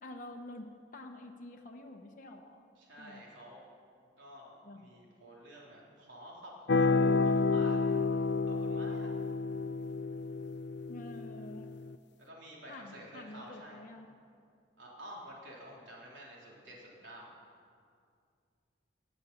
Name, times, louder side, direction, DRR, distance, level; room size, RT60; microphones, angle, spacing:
voice 1, 0.0-2.7 3.0-3.2 4.6-4.9 10.9-11.7 12.7-14.1, left 1 dB, 45° left, 2 dB, 0.8 m, -48 dB
voice 2, 2.8-3.6 4.2-9.1 12.2-13.8 14.8-17.3, equal, 85° right, -3 dB, 3.8 m, -50 dB
sound 1, 6.7-11.9, left 4 dB, 65° left, 0.4 m, -30 dB
19.5 x 8.1 x 7.1 m, 2.3 s
head